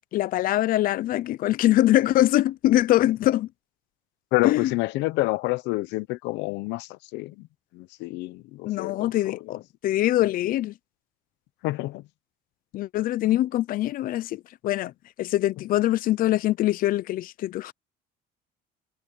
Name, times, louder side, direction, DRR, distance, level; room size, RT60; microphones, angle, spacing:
voice 1, 0.1-3.5 4.4-4.7 8.6-10.7 12.7-14.9 15.2-17.7, left 14 dB, 55° left, 0.5 m, -23 dB
voice 2, 4.3-7.3 7.7-9.4 11.6-12.0, left 21 dB, 85° left, 0.9 m, -28 dB
cardioid pair, 135°, 18 cm